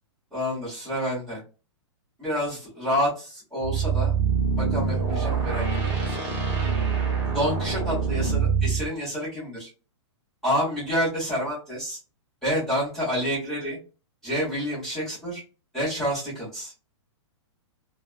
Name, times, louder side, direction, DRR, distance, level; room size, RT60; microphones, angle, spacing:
voice 1, 0.3-1.4 2.2-4.1 4.6-5.6 6.1-6.2 7.2-9.7 10.4-12.0 12.4-13.8 14.2-15.4 15.7-16.7, equal, ahead, -12 dB, 1.6 m, -28 dB
sound 1, 3.6-8.9, right 6 dB, 25° right, 0.9 m, -25 dB
3.4 x 2.3 x 2.2 m, 0.33 s
hypercardioid pair, 170°, 15 cm